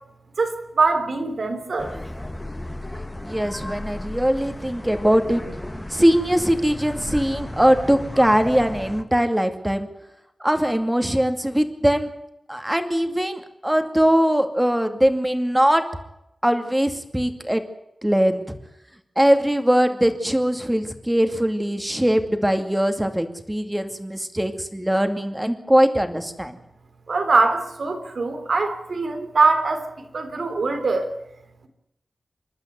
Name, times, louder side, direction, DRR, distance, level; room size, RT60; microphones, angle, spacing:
voice 1, 0.4-1.9 27.1-29.9 30.1-31.1, right 3 dB, 70° right, 7 dB, 3.6 m, -22 dB
sound 1, 1.8-9.0, left 1 dB, 15° left, 1.9 m, -34 dB
voice 2, 3.2-9.9 10.4-12.1 12.5-15.8 16.4-17.6 18.0-18.4 19.2-26.6, equal, 10° right, 7 dB, 2.4 m, -21 dB
27.5 x 12.0 x 9.5 m, 0.87 s
wide cardioid pair, 100°, 0 cm